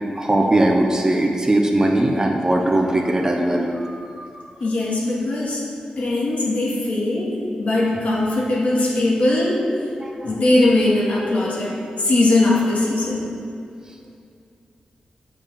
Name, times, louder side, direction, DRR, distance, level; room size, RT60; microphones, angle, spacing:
voice 1, 0.2-4.4 10.0-10.3, right 1 dB, 25° right, 1 dB, 0.9 m, -20 dB
voice 2, 4.6-5.6 6.0-9.7 10.2-13.3, left 2 dB, 60° left, -4 dB, 2.0 m, -20 dB
8.7 x 5.4 x 5.1 m, 2.4 s
wide cardioid pair, 85°, 3 cm